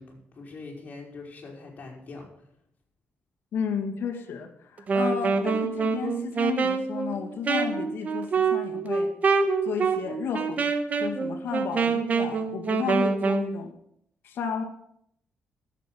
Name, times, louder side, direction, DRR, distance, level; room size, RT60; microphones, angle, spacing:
voice 1, 0.0-2.3, left 3 dB, 40° left, 0 dB, 4.6 m, -43 dB
voice 2, 3.5-9.1 9.6-10.7 11.0-13.7 14.2-14.6, left 6 dB, 75° left, 5 dB, 2.1 m, -32 dB
Wind instrument woodwind instrument, 4.8-13.5, right 4 dB, 40° right, 1.5 m, -26 dB
11.5 x 8.2 x 9.0 m, 0.71 s
cardioid pair, 120°, 4 cm